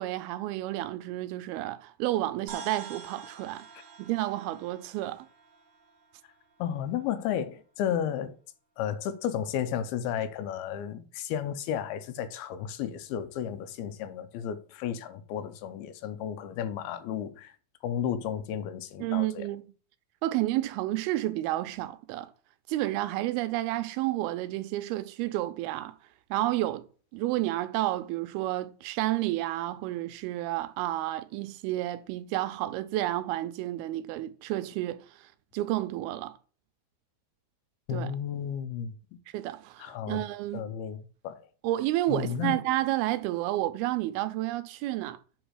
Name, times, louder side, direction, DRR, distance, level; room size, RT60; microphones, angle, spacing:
voice 1, 0.0-3.7 4.0-5.3 19.0-19.6 20.2-22.3 22.7-26.0 26.3-26.9 27.1-36.4 37.9-38.1 39.3-40.7 41.6-45.2, right 15 dB, 85° right, 2.5 m, -31 dB
sound 1, 2.5-7.1, right 5 dB, 60° right, 2.5 m, -47 dB
voice 2, 6.6-8.4 8.8-17.5 17.8-19.4 37.9-39.0 39.8-40.2 40.5-41.4 42.1-42.6, left 9 dB, 80° left, 2.6 m, -33 dB
8.0 x 4.0 x 6.3 m
omnidirectional pair, 4.4 m